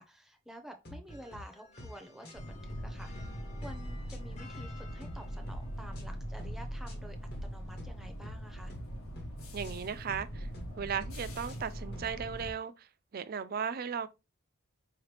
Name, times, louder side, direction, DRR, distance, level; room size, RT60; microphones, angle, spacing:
voice 1, 0.0-3.3 3.6-8.7, equal, ahead, 0.6 m, -50 dB
sound 1, 0.8-1.4 1.8-2.0 2.2-2.8 3.2-3.3 3.6-4.7 5.0-5.6 5.9-6.1 6.4-6.9 7.3-7.5 7.8-8.3 8.7-8.9 9.2-9.7 10.1-10.3 10.5-11.1 11.5-12.5, left 1 dB, 45° left, 1.2 m, -47 dB
sound 2, 1.1-11.4, left 4 dB, 30° left, 0.8 m, -59 dB
sound 3, 2.3-12.5, equal, 80° left, 1.1 m, -41 dB
voice 2, 9.5-10.5 10.8-12.9 13.1-14.1, right 7 dB, 45° right, 0.4 m, -36 dB
4.8 x 2.9 x 3.2 m
head